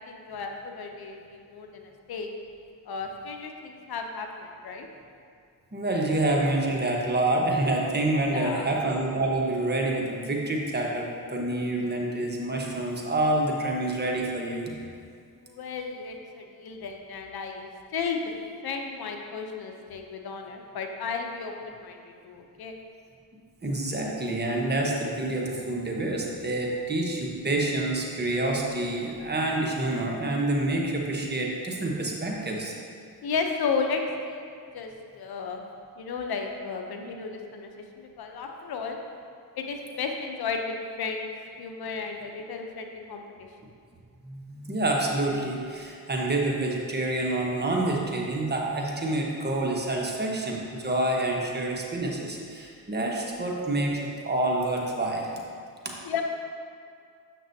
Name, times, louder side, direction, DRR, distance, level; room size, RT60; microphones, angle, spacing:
voice 1, 0.0-2.3 2.9-4.9 8.2-8.7 15.4-18.2 18.6-22.8 33.2-34.4 34.7-34.9 35.2-35.6 36.0-37.7 38.0-39.0 39.6-41.3 41.6-43.2 56.0-56.2, left 5 dB, 65° left, 3 dB, 0.7 m, -33 dB
voice 2, 5.7-14.7 23.6-32.7 44.2-55.3 55.8-55.9, right 2 dB, 25° right, -1 dB, 1.1 m, -27 dB
7.5 x 6.0 x 2.7 m, 2.3 s
cardioid pair, 65°, 41 cm